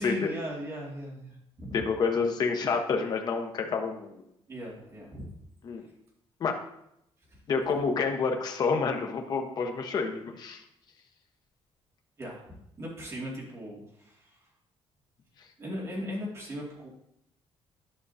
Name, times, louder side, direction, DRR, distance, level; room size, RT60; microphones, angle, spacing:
voice 1, 0.0-1.8 4.5-5.3 7.3-7.4 12.2-12.4 12.8-14.5 15.6-16.9, equal, 25° right, -3 dB, 2.3 m, -38 dB
voice 2, 1.7-4.2 5.6-5.8 6.4-6.6 7.5-10.6, left 5 dB, 40° left, 3 dB, 0.9 m, -28 dB
11.0 x 6.2 x 2.7 m, 0.77 s
cardioid pair, 165°, 11 cm